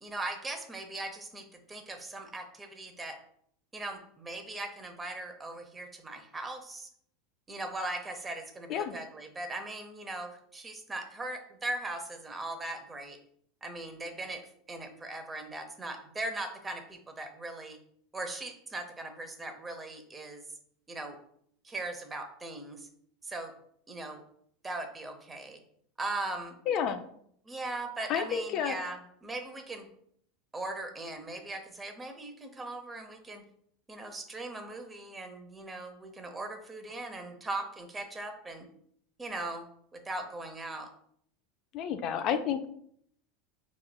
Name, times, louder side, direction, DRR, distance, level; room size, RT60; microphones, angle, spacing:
voice 1, 0.0-3.2 3.7-6.9 7.5-13.2 13.6-14.4 14.7-17.8 18.1-20.4 20.9-21.2 21.6-22.9 23.2-23.5 23.9-24.2 24.6-25.6 26.0-26.5 27.5-29.9 30.5-33.4 33.9-38.7 39.2-39.7 39.9-40.9, right 2 dB, 20° right, 5 dB, 0.8 m, -39 dB
voice 2, 26.7-27.0 28.1-28.8 41.7-42.7, left 8 dB, 50° left, 8 dB, 0.3 m, -30 dB
4.7 x 3.0 x 2.2 m, 0.66 s
hypercardioid pair, 90°, 0 cm